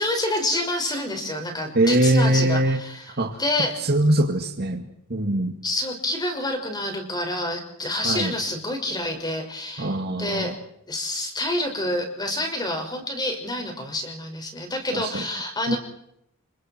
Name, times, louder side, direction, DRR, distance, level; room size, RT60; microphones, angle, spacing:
voice 1, 0.0-3.8 5.6-10.5 10.9-15.8, left 1 dB, 20° left, 4 dB, 5.6 m, -28 dB
voice 2, 1.7-2.8 3.2-3.4 3.8-4.8 5.1-5.5 8.0-8.3 9.8-10.5 14.9-15.2 15.7-15.8, right 1 dB, 50° right, 3 dB, 2.2 m, -22 dB
29.5 x 25.0 x 4.5 m, 0.77 s
head